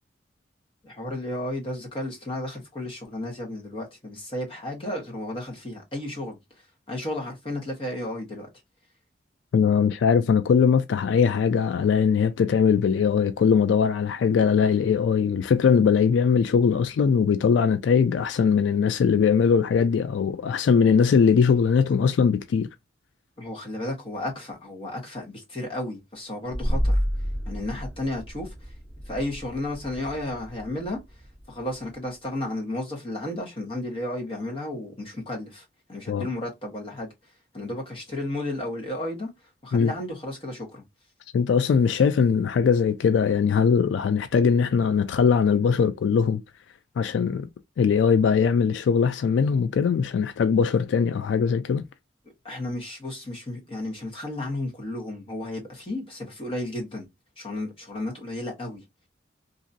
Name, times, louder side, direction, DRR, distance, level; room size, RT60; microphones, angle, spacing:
voice 1, 0.8-6.4 6.9-8.5 23.4-27.0 27.5-28.5 29.1-31.0 31.5-37.1 37.5-39.3 39.6-40.8 52.4-57.1 57.4-58.8, left 1 dB, 30° left, 1.1 m, -33 dB
voice 2, 9.5-22.7 36.1-36.3 39.7-39.9 41.3-46.4 47.0-47.5 47.8-51.8, left 6 dB, 80° left, 0.3 m, -21 dB
sound 1, 26.5-32.1, equal, ahead, 0.8 m, -30 dB
2.9 x 2.5 x 2.6 m
head